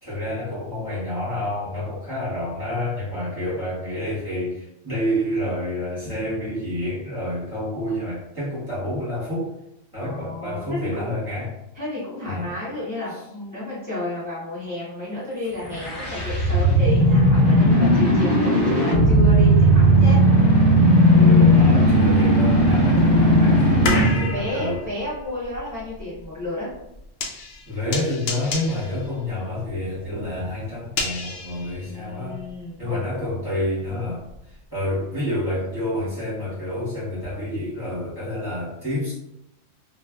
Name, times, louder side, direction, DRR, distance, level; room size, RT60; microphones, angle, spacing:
voice 1, 0.0-9.5 9.9-11.5 12.2-12.5 21.1-24.8 27.7-32.4 32.8-39.1, left 1 dB, 20° right, -11 dB, 1.5 m, -28 dB
voice 2, 10.0-11.1 11.7-20.2 23.8-26.7 31.8-33.0, left 1 dB, 15° left, -12 dB, 1.0 m, -31 dB
sound 1, 15.6-24.3, equal, 40° left, 1.6 m, -16 dB
sound 2, 22.5-32.6 32.9-34.6 34.9-35.0, left 3 dB, 60° left, 0.7 m, -33 dB
3.1 x 2.5 x 2.4 m, 0.85 s
omnidirectional pair, 1.2 m